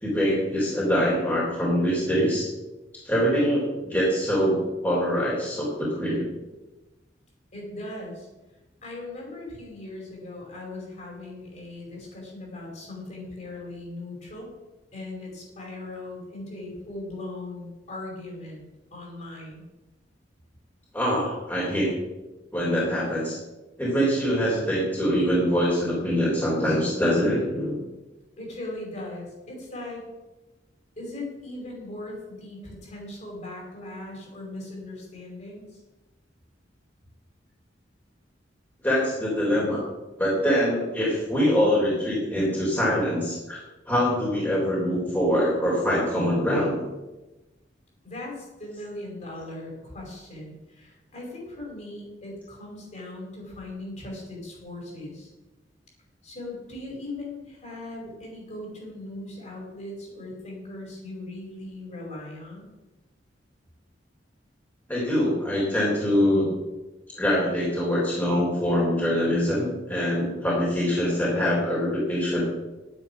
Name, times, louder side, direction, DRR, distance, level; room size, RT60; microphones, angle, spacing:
voice 1, 0.0-2.5 3.0-6.3 20.9-21.9 22.5-23.4 23.8-27.8 38.8-39.8 40.2-43.6 43.9-46.8 64.9-66.5 67.2-72.4, equal, 10° left, -6 dB, 3.5 m, -24 dB
voice 2, 7.5-8.3 8.5-14.5 14.9-18.6 18.9-19.7 28.4-30.0 31.0-35.8 48.0-55.3 56.2-62.7, left 2 dB, 40° left, -2 dB, 5.1 m, -39 dB
11.0 x 9.9 x 6.1 m, 1.1 s
head